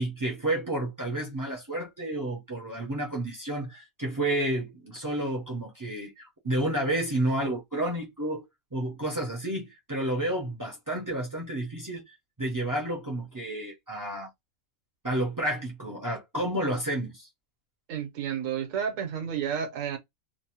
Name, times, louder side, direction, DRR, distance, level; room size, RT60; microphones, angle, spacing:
voice 1, 0.0-14.3 15.0-17.3, right 1 dB, 30° right, 0.3 m, -31 dB
voice 2, 17.9-20.0, right 8 dB, 70° right, 1.1 m, -31 dB
2.6 x 2.0 x 2.8 m
omnidirectional pair, 1.4 m